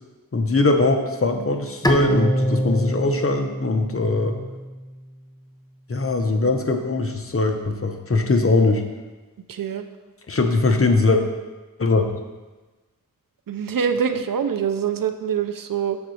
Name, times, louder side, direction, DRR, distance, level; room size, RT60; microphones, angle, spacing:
voice 1, 0.3-4.4 5.9-8.9 10.3-11.2 11.8-12.0, left 3 dB, 40° left, 4 dB, 0.8 m, -21 dB
Bowed string instrument, 1.8-5.1, equal, 10° left, 0.6 m, -26 dB
voice 2, 9.5-9.9 13.5-16.0, right 7 dB, 70° right, 9 dB, 0.6 m, -24 dB
7.0 x 3.9 x 6.3 m, 1.2 s
wide cardioid pair, 75°, 34 cm